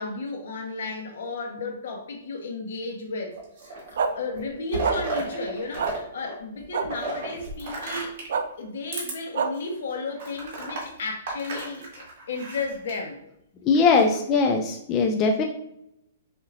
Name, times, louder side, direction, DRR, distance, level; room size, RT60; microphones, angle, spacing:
voice 1, 0.0-3.4 3.6-8.2 8.6-13.2 14.0-14.2, left 3 dB, 65° left, 2 dB, 1.2 m, -33 dB
sound 1, 3.3-4.0 4.3-6.0 6.2-8.4 8.9-9.1 9.6-9.7 10.2-13.0 13.7-14.3, right 3 dB, 45° right, 1.8 m, -34 dB
sound 2, 4.0-4.1 4.8-5.0 5.8-5.9 6.7-6.9 8.3-8.4 9.3-9.5, right 6 dB, 65° right, 0.5 m, -24 dB
voice 2, 13.7-15.4, left 4 dB, 20° left, 2 dB, 0.4 m, -20 dB
7.0 x 2.9 x 2.6 m, 0.81 s
hypercardioid pair, 160°, 0 cm